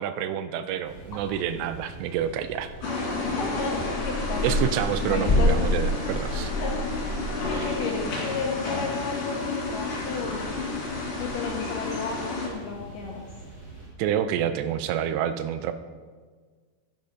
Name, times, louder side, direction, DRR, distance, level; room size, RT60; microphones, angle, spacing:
voice 1, 0.0-2.7 4.4-6.5 7.6-7.7 14.0-15.7, right 9 dB, 85° right, 11 dB, 2.7 m, -28 dB
sound 1, 0.8-13.9, right 2 dB, 25° right, 3.9 m, -43 dB
sound 2, 2.8-12.5, left 3 dB, 45° left, 3.7 m, -31 dB
sound 3, 3.0-8.0, left 1 dB, 20° left, 1.9 m, -28 dB
voice 2, 3.4-4.5 5.1-5.8 6.6-7.0 7.5-10.6 11.2-13.2, left 5 dB, 70° left, 0 dB, 2.1 m, -33 dB
10.5 x 10.5 x 5.2 m, 1.5 s
omnidirectional pair, 5.0 m